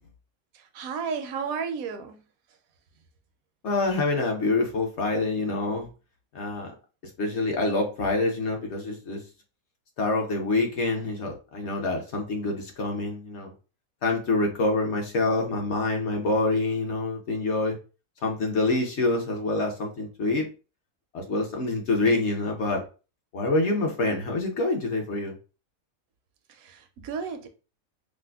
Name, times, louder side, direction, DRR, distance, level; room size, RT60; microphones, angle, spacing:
voice 1, 0.5-2.2 26.5-27.5, right 6 dB, 75° right, 1.0 m, -33 dB
voice 2, 3.6-5.9 6.3-6.7 7.2-9.2 10.0-13.5 14.0-17.8 18.2-20.5 21.1-22.8 23.3-25.3, left 2 dB, 60° left, 0.9 m, -26 dB
4.8 x 2.0 x 2.3 m
omnidirectional pair, 1.5 m